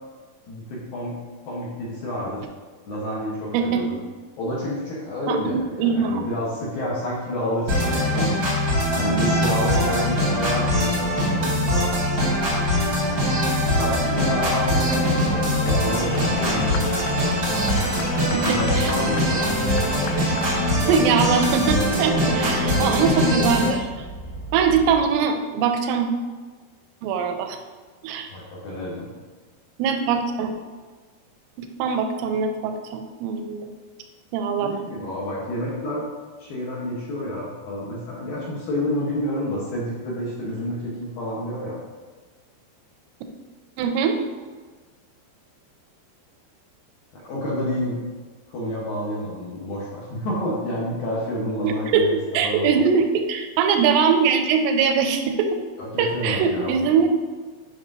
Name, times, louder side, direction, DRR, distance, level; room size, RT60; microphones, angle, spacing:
voice 1, 0.5-1.2 1.4-2.4 2.9-4.0 4.4-8.4 9.0-11.9 13.5-17.0 18.4-19.5 28.3-29.1 34.6-36.0 36.4-41.8 47.1-48.0 48.5-52.2 52.4-52.8 55.8-56.9, equal, 70° left, -5 dB, 2.3 m, -29 dB
voice 2, 5.3-6.2 18.3-18.9 20.9-23.9 24.5-26.1 27.0-27.6 28.0-28.3 29.8-30.5 31.6-33.7 34.3-34.8 43.8-44.2 51.6-52.0 52.3-55.5 56.0-57.1, right 6 dB, 85° right, 5 dB, 2.7 m, -22 dB
sound 1, 7.7-23.7, equal, 55° right, 0.9 m, -22 dB
sound 2, 9.7-25.0, right 2 dB, 50° left, 1.1 m, -38 dB
sound 3, 14.9-20.8, left 6 dB, 85° left, 2.5 m, -36 dB
9.2 x 5.9 x 2.7 m, 1.4 s
omnidirectional pair, 5.5 m